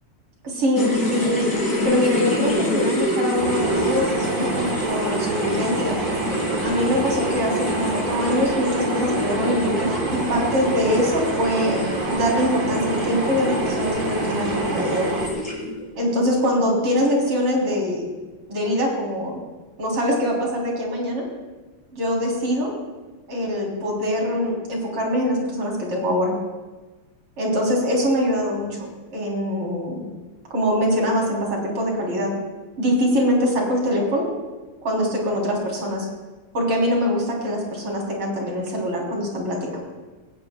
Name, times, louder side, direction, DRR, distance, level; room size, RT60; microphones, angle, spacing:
voice 1, 0.4-1.4 1.8-6.0 6.6-11.8 12.1-15.1 16.0-18.1 18.5-19.4 19.8-21.2 21.9-22.7 23.3-26.3 27.4-30.0 30.5-32.3 32.8-34.3 34.8-36.1 36.5-39.8, equal, 75° right, -2 dB, 4.4 m, -23 dB
sound 1, 0.8-15.8, left 1 dB, 45° left, 3.5 m, -26 dB
sound 2, 3.4-15.3, right 4 dB, 50° right, 1.6 m, -28 dB
20.0 x 17.5 x 2.3 m, 1.2 s
omnidirectional pair, 2.4 m